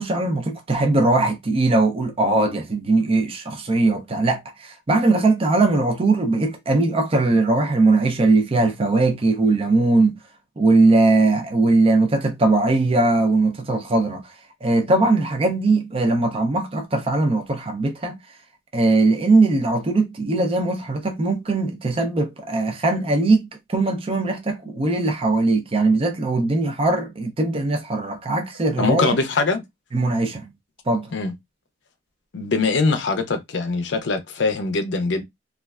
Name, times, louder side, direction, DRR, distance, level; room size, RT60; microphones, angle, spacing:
voice 1, 0.0-10.2 10.6-14.3 14.6-18.2 18.7-29.1 29.9-30.5 30.9-31.1, right 2 dB, 30° right, 0.5 m, -20 dB
voice 2, 28.8-29.6 31.1-31.3 32.3-35.2, left 3 dB, 65° left, 0.5 m, -22 dB
3.1 x 2.4 x 2.3 m
head